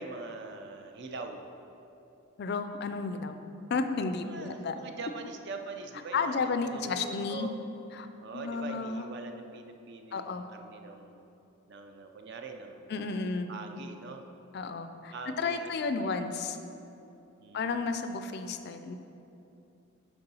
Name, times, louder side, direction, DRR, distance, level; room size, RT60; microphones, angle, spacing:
voice 1, 0.0-1.5 4.2-7.5 8.2-11.3 11.7-14.2 15.1-16.2 17.4-17.8, right 3 dB, 50° right, 5 dB, 0.5 m, -43 dB
voice 2, 2.4-3.4 3.7-4.8 6.1-7.5 7.9-8.1 8.3-9.1 10.1-10.5 12.9-13.5 14.5-16.6 17.5-19.0, left 4 dB, 45° left, 8 dB, 0.3 m, -32 dB
6.8 x 4.5 x 5.4 m, 2.9 s
head